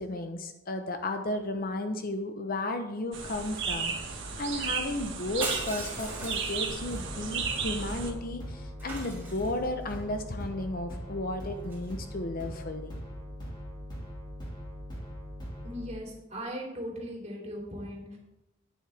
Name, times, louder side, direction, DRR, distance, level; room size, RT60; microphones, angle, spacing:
voice 1, 0.0-13.0, left 1 dB, 45° left, 6 dB, 0.8 m, -34 dB
sound 1, 3.1-8.1, right 5 dB, 60° right, 1.6 m, -34 dB
Shatter, 5.4-7.0 8.8-9.9 11.6-11.9, right 2 dB, 10° right, 3.3 m, -38 dB
sound 2, 6.7-15.9, equal, 20° left, 2.2 m, -41 dB
voice 2, 15.6-18.2, equal, 30° right, -2 dB, 3.1 m, -38 dB
11.5 x 9.5 x 3.4 m, 0.96 s
head